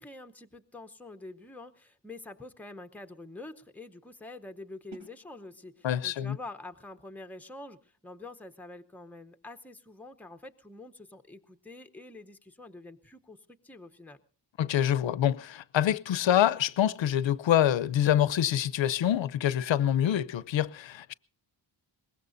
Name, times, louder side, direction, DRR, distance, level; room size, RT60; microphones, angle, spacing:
voice 1, 0.0-14.2, left 2 dB, 5° left, 0.8 m, -46 dB
sound 1, 4.9-10.6, right 4 dB, 60° right, 7.3 m, -59 dB
voice 2, 5.8-6.4 14.6-21.1, left 11 dB, 80° left, 0.7 m, -26 dB
23.0 x 20.5 x 2.6 m
wide cardioid pair, 180°, 44 cm